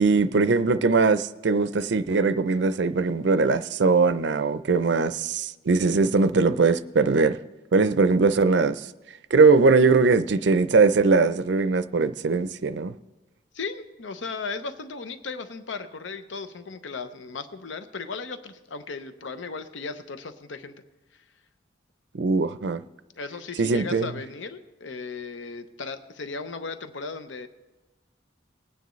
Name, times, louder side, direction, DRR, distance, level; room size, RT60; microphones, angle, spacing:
voice 1, 0.0-7.4 7.7-8.9 9.3-12.9 22.1-22.8 23.6-24.1, right 4 dB, 70° right, 0.5 m, -21 dB
voice 2, 13.5-20.7 23.2-27.5, left 4 dB, 80° left, 0.7 m, -36 dB
20.5 x 9.2 x 3.1 m
head